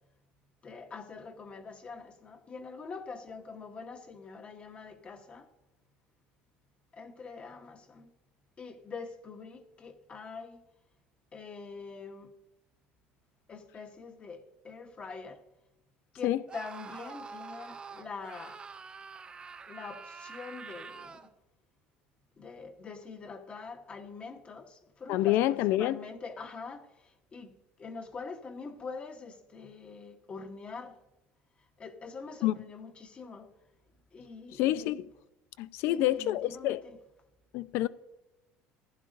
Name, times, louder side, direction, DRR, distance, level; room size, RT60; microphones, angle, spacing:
voice 1, 0.6-5.5 6.9-8.1 8.6-10.6 11.3-12.3 13.5-15.4 16.1-18.6 19.6-21.2 22.4-27.5 27.8-31.0 31.8-33.5 34.1-34.6 35.8-37.0, left 4 dB, 25° left, 1.1 m, -44 dB
Screaming, 16.5-21.3, right 5 dB, 20° right, 0.6 m, -46 dB
voice 2, 25.1-26.0 32.4-32.5 34.5-35.1 35.6-36.8 37.5-37.9, left 14 dB, 65° left, 0.5 m, -27 dB
15.0 x 11.0 x 2.6 m
cardioid pair, 135°, 4 cm